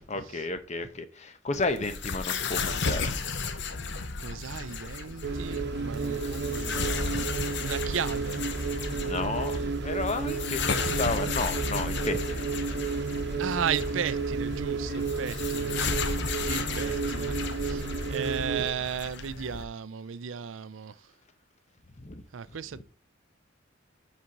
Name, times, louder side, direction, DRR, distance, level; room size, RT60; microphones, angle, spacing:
voice 1, 0.1-3.1 9.0-12.6 18.6-18.7 22.0-22.2, left 3 dB, 35° left, 0.9 m, -32 dB
sound 1, 1.5-19.6, left 5 dB, 60° left, 0.9 m, -34 dB
voice 2, 4.2-7.3 7.6-8.4 13.4-15.7 16.4-17.8 18.1-21.0 22.3-22.8, right 7 dB, 75° right, 0.5 m, -35 dB
sound 2, 5.2-18.7, right 4 dB, 60° right, 1.0 m, -32 dB
7.9 x 4.3 x 5.9 m
head